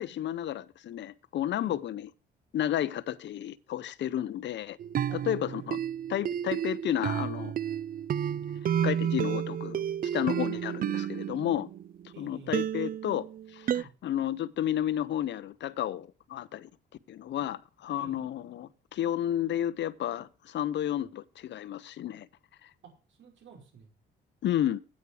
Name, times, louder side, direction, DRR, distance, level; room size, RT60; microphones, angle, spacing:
voice 1, 0.0-2.1 2.5-4.8 5.1-5.8 6.1-7.5 8.8-11.7 12.2-16.7 17.1-22.3 22.6-22.7 24.4-24.8, left 11 dB, 65° left, 0.7 m, -32 dB
sound 1, 4.8-12.1 12.5-13.8, right 9 dB, 45° right, 0.4 m, -31 dB
voice 2, 5.1-5.7 8.3-8.6 12.1-12.6 13.7-13.9 18.0-18.3 22.8-23.9, right 5 dB, 70° right, 5.2 m, -51 dB
9.5 x 8.4 x 4.8 m
cardioid pair, 90°, 20 cm